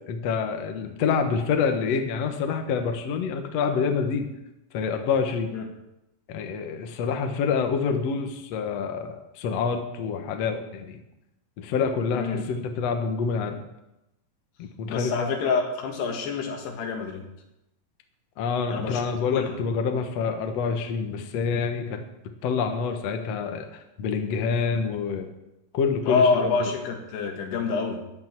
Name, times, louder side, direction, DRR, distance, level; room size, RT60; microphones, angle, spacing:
voice 1, 0.1-4.3 4.7-5.5 6.3-11.0 11.6-13.6 14.6-15.3 18.4-22.0 22.4-23.6 24.0-25.3 25.7-26.7, left 5 dB, 65° left, 5 dB, 1.7 m, -27 dB
voice 2, 12.1-12.5 14.9-17.3 18.7-19.0 19.3-19.6 26.1-28.0, left 4 dB, 80° left, 2 dB, 3.8 m, -26 dB
15.5 x 10.5 x 4.6 m, 0.90 s
omnidirectional pair, 4.7 m